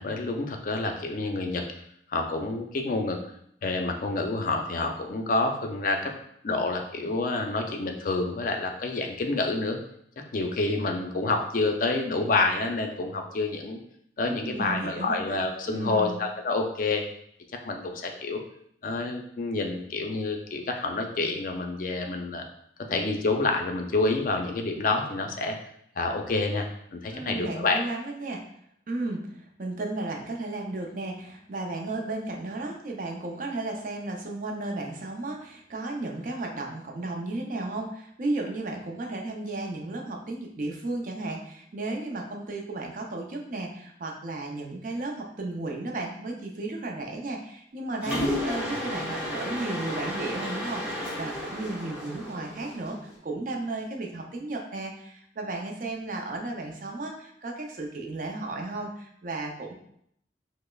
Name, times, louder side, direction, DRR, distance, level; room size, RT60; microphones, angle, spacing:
voice 1, 0.0-1.6 2.1-3.2 3.6-6.1 6.4-9.8 10.3-13.8 14.2-17.0 17.6-18.4 18.8-22.4 22.9-25.6 26.0-27.8 48.1-48.7, left 3 dB, 45° left, 3 dB, 0.4 m, -28 dB
voice 2, 14.3-15.4 15.7-16.2 27.1-28.4 28.9-53.0 53.2-59.7, right 2 dB, 45° right, 1 dB, 0.5 m, -34 dB
Mechanisms, 48.0-53.1, left 1 dB, 10° right, 0.8 m, -33 dB
5.1 x 2.0 x 2.3 m, 0.72 s
head